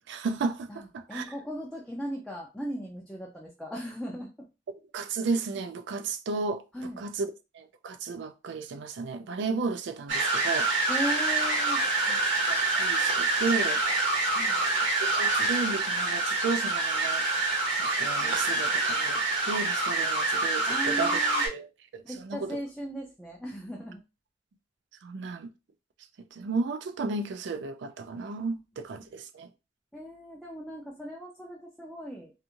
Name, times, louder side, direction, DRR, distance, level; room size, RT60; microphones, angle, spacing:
voice 1, 0.1-1.2 4.9-10.7 12.1-12.2 12.5-13.8 15.0-17.3 17.8-21.7 21.9-22.6 25.0-25.5 26.3-29.5, right 4 dB, 70° right, 0.4 m, -33 dB
voice 2, 0.7-4.5 6.7-7.0 10.9-11.8 14.3-14.6 20.7-21.5 22.0-24.0 29.0-29.1 29.9-32.3, equal, ahead, 0.4 m, -37 dB
sound 1, 10.1-21.5, right 3 dB, 90° right, 1.0 m, -26 dB
2.5 x 2.4 x 2.8 m
head